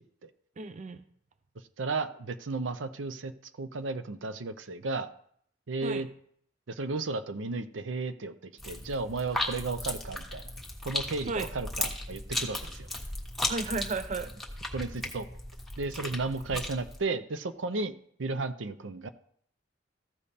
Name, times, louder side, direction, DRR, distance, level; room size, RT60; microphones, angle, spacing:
voice 1, 0.6-1.0 5.8-6.0 11.3-11.5 13.5-14.3, right 3 dB, 40° right, 11 dB, 0.5 m, -33 dB
voice 2, 1.8-3.3 3.6-5.1 5.7-6.1 6.7-10.5 10.8-12.9 14.7-15.3 15.8-17.9 18.2-19.1, right 3 dB, 80° right, 11 dB, 0.7 m, -34 dB
sound 1, 8.6-17.0, left 1 dB, ahead, 1.3 m, -36 dB
14.5 x 5.2 x 4.2 m, 0.65 s
head